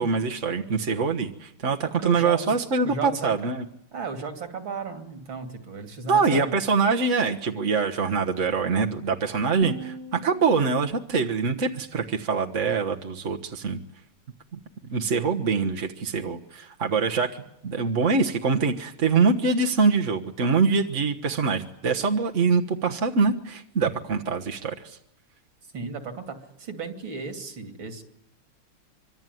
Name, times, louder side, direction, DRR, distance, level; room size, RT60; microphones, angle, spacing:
voice 1, 0.0-3.6 6.1-13.8 14.5-14.6 14.9-25.0, right 4 dB, 40° right, 2 dB, 1.4 m, -24 dB
voice 2, 2.0-3.3 3.9-6.6 25.7-28.0, right 5 dB, 65° right, 7 dB, 3.3 m, -35 dB
sound 1, 9.6-12.6, right 4 dB, 15° left, 2.1 m, -42 dB
25.5 x 24.0 x 9.3 m, 0.76 s
omnidirectional pair, 2.4 m